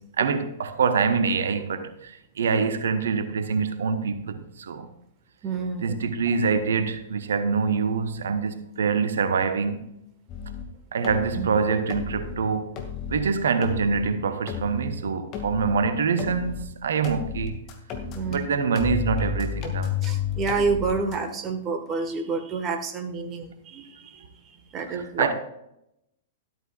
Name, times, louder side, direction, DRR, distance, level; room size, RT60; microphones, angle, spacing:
voice 1, 0.0-4.9 5.8-9.9 10.9-12.8 13.1-17.7 18.3-19.9 24.9-25.3, right 5 dB, 65° right, 1.1 m, -25 dB
voice 2, 5.4-5.8 11.4-11.5 18.1-18.4 20.0-24.2 24.7-25.3, right 4 dB, 25° right, 1.5 m, -28 dB
sound 1, 10.3-10.7 11.0-11.5 11.9-12.4 12.8-13.2 13.6-14.1 14.5-14.9 15.3-15.8 16.2-16.7 17.0-18.4 18.7-21.2, left 6 dB, 35° left, 2.1 m, -31 dB
13.5 x 13.0 x 2.4 m
figure-of-eight pair, 105°, 0 cm